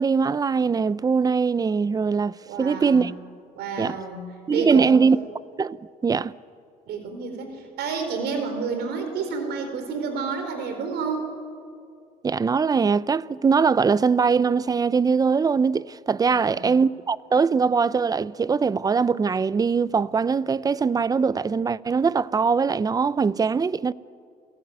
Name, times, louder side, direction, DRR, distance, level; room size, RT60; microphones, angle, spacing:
voice 1, 0.0-3.1 3.8-4.0 4.5-5.2 5.6-5.8 6.0-6.3 12.2-23.9, right 5 dB, 20° right, 0.6 m, -21 dB
voice 2, 2.5-3.1 3.6-5.0 6.9-11.3 16.2-16.7, right 5 dB, 75° right, 4.3 m, -30 dB
28.5 x 18.0 x 9.4 m
cardioid pair, 110°, 17 cm